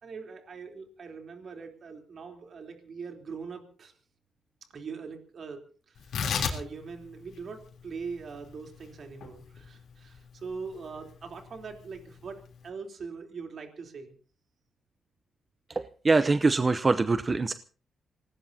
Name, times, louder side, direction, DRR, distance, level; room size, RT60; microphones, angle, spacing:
voice 1, 0.0-3.9 4.7-5.6 5.9-6.2 6.5-14.2, right 5 dB, 60° right, 4 dB, 3.6 m, -42 dB
Tearing, 6.0-12.7, left 6 dB, 80° left, 3.4 m, -37 dB
voice 2, 15.7-17.5, right 3 dB, 35° right, 12 dB, 0.7 m, -24 dB
25.5 x 18.5 x 2.8 m, 0.38 s
cardioid pair, 75°, 0 cm